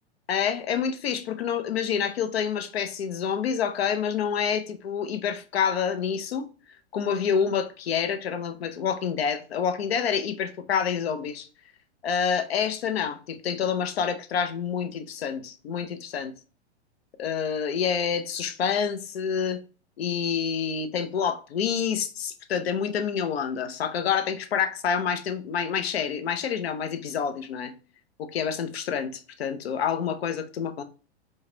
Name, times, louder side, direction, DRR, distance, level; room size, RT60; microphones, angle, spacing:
voice 1, 0.3-6.5 6.9-11.5 12.0-16.3 17.2-19.6 20.0-27.7 28.2-30.8, left 7 dB, 65° left, 0.6 m, -27 dB
4.6 x 2.2 x 2.7 m
figure-of-eight pair, 105°, 34 cm